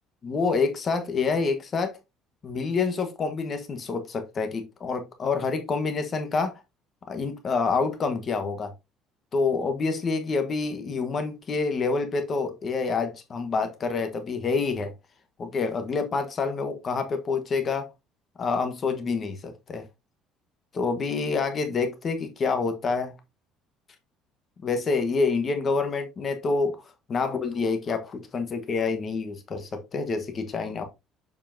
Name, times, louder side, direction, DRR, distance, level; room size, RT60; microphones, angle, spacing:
voice 1, 0.2-2.0 2.4-6.6 7.1-8.7 9.3-14.9 15.4-17.9 18.4-19.8 20.7-23.1 24.6-26.8 27.1-30.8, left 4 dB, 30° left, 1.1 m, -27 dB
7.1 x 5.5 x 2.5 m
cardioid pair, 170°, 0 cm